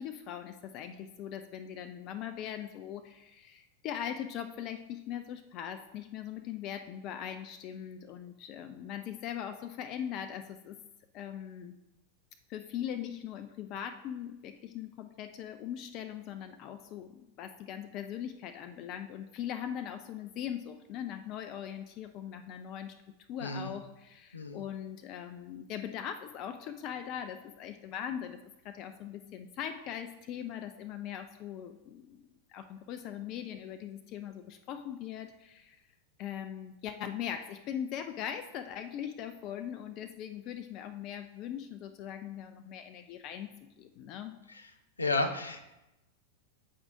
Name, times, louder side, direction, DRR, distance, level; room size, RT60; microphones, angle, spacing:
voice 1, 0.0-10.8 11.1-11.7 12.5-23.0 23.3-28.4 28.6-35.8 36.2-43.5 43.8-44.4, left 9 dB, 40° left, 8 dB, 0.4 m, -40 dB
voice 2, 23.4-23.7 24.3-24.6 44.5-44.6 45.0-45.6, left 2 dB, 80° left, 5 dB, 0.7 m, -32 dB
8.6 x 4.6 x 2.6 m, 0.94 s
figure-of-eight pair, 90°, 0 cm